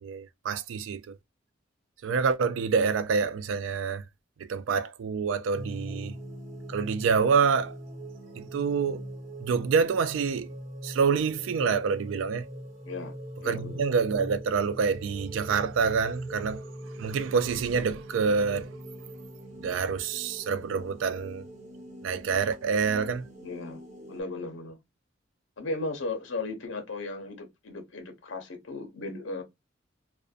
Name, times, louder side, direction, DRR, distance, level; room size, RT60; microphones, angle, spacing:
voice 1, 0.0-1.2 2.0-4.0 4.4-6.1 6.7-7.8 8.4-9.0 9.4-10.5 10.8-12.5 13.5-16.6 17.0-18.7 19.6-21.4 22.0-23.3, right 5 dB, 80° right, 0.3 m, -27 dB
sound 1, 5.5-24.2, right 1 dB, 40° right, 0.9 m, -42 dB
voice 2, 12.8-13.8 23.4-23.8 24.1-24.8 25.6-29.4, left 3 dB, 75° left, 0.7 m, -36 dB
2.5 x 2.1 x 2.3 m
head